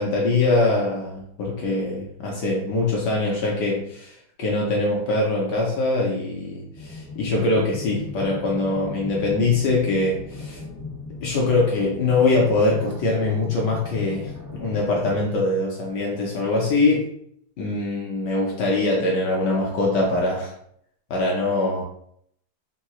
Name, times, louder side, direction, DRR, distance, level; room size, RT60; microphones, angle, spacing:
voice 1, 0.0-10.6 11.2-17.1 17.6-20.5 21.1-21.8, left 2 dB, 70° left, -2 dB, 1.0 m, -23 dB
sound 1, 6.7-15.2, left 3 dB, 50° left, 0.8 m, -37 dB
3.8 x 2.3 x 2.8 m, 0.69 s
omnidirectional pair, 2.3 m